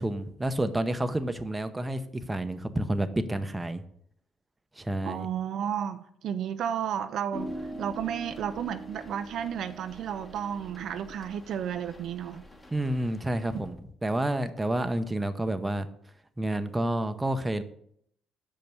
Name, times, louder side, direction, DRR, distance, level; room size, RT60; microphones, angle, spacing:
voice 1, 0.0-2.0 2.3-3.8 4.8-5.3 12.7-15.9 16.4-17.6, right 1 dB, 15° right, 9 dB, 0.7 m, -29 dB
voice 2, 5.0-7.5 7.8-12.4 13.5-13.6, right 9 dB, 65° right, 10 dB, 0.5 m, -32 dB
sound 1, 7.3-13.7, right 1 dB, 20° left, 1.4 m, -43 dB
6.6 x 5.3 x 6.0 m, 0.69 s
supercardioid pair, 75°, 0 cm